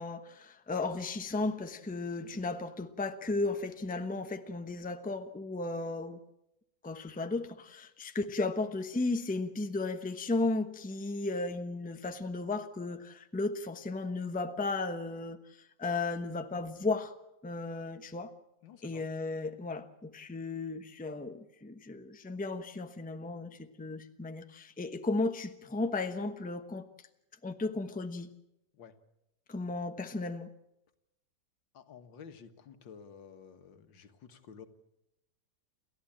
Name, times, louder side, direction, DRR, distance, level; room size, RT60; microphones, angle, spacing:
voice 1, 0.0-6.2 6.8-17.1 17.4-18.3 18.8-26.9 27.4-28.3 29.5-30.5, left 3 dB, 5° left, 8 dB, 0.8 m, -35 dB
voice 2, 18.6-19.1 28.7-28.9 31.7-34.7, left 7 dB, 85° left, 9 dB, 2.1 m, -52 dB
29.5 x 13.5 x 8.8 m, 0.87 s
omnidirectional pair, 2.0 m